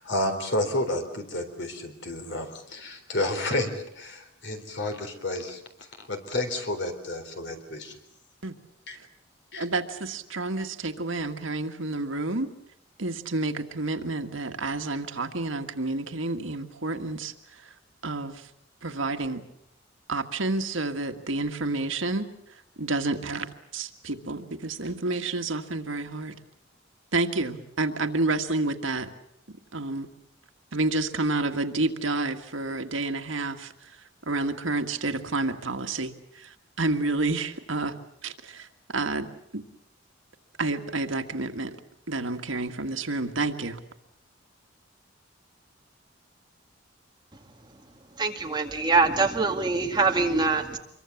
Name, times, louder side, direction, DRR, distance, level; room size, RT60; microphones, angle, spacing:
voice 1, 0.0-8.0 8.9-9.0 9.5-9.7, left 1 dB, 60° left, 6 dB, 3.8 m, -31 dB
voice 2, 9.5-12.5 13.0-17.7 18.0-18.5 18.8-19.4 20.1-22.3 22.8-23.5 23.7-26.4 27.1-29.1 29.7-30.1 30.7-33.7 34.2-38.0 38.2-39.3 39.5-39.6 40.6-41.8 42.1-43.8, right 2 dB, 85° right, 6 dB, 1.7 m, -29 dB
voice 3, 48.2-50.8, right 4 dB, 20° right, 3 dB, 2.0 m, -24 dB
26.0 x 23.0 x 7.2 m, 0.77 s
head